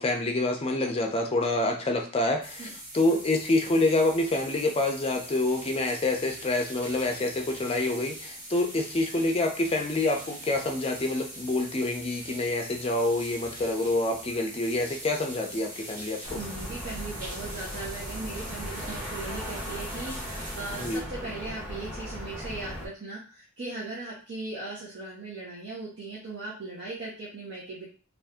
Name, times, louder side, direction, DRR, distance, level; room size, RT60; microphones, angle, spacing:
voice 1, 0.0-2.7 2.9-16.4 20.7-21.0, left 2 dB, 25° left, 3 dB, 0.5 m, -27 dB
sound 1, 2.4-21.0, right 1 dB, 35° right, 1.2 m, -43 dB
sound 2, 16.2-22.9, equal, 5° right, 0.8 m, -37 dB
voice 2, 16.3-27.9, right 3 dB, 55° right, -7 dB, 0.9 m, -38 dB
2.6 x 2.5 x 3.4 m, 0.39 s
head